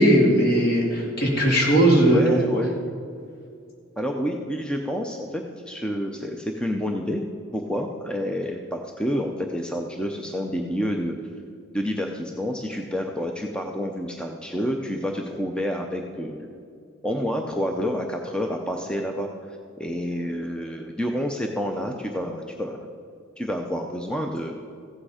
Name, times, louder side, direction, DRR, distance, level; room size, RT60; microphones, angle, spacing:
voice 1, 0.0-2.4, right 1 dB, 50° left, -1 dB, 2.5 m, -18 dB
voice 2, 2.1-2.7 4.0-7.2 7.5-11.2 11.7-16.5 17.0-22.9 23.4-24.6, equal, 5° left, 2 dB, 0.6 m, -29 dB
15.0 x 8.7 x 4.9 m, 2.4 s
head